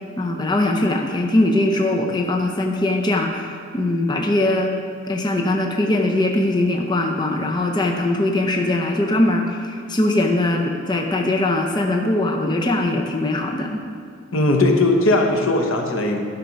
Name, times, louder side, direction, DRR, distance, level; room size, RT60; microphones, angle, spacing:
voice 1, 0.2-4.7 5.0-13.8, left 1 dB, 20° left, 2 dB, 0.6 m, -21 dB
voice 2, 14.3-16.2, left 2 dB, 80° left, 3 dB, 1.0 m, -18 dB
10.0 x 5.9 x 5.2 m, 2.3 s
head